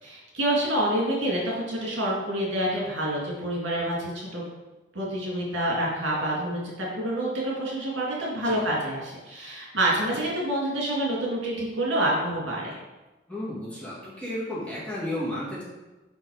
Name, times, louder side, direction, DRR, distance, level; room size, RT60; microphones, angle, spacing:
voice 1, 0.0-4.4 4.9-12.8, right 1 dB, 70° right, -4 dB, 2.1 m, -27 dB
voice 2, 13.3-15.6, left 1 dB, 5° left, -7 dB, 1.9 m, -33 dB
5.8 x 5.1 x 4.8 m, 1.1 s
head